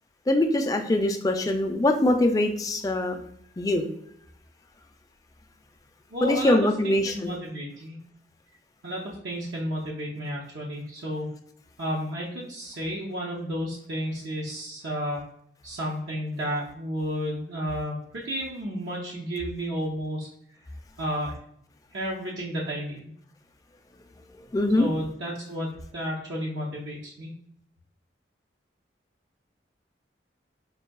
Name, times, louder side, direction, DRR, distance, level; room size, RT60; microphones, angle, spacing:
voice 1, 0.3-3.2 3.6-3.8 6.2-7.3 24.5-24.9, left 1 dB, 20° left, 5 dB, 0.3 m, -23 dB
voice 2, 6.1-6.6 6.8-8.0 8.8-11.4 11.8-15.2 15.6-20.3 21.0-21.3 21.9-23.1 24.8-27.3, equal, 90° right, -4 dB, 0.7 m, -32 dB
5.4 x 2.6 x 2.3 m, 0.71 s
head